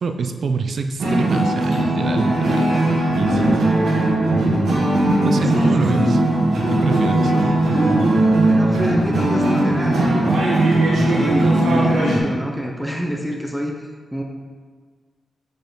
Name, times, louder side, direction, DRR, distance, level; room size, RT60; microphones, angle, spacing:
voice 1, 0.0-2.7 3.2-3.7 5.2-6.2 6.7-7.3, right 4 dB, 50° right, 6 dB, 0.5 m, -25 dB
sound 1, 1.0-12.2, right 1 dB, 75° right, 1.5 m, -18 dB
voice 2, 5.4-6.1 8.5-10.4 10.9-14.2, equal, ahead, 0 dB, 0.5 m, -27 dB
6.6 x 5.4 x 3.9 m, 1.5 s
wide cardioid pair, 155°, 0 cm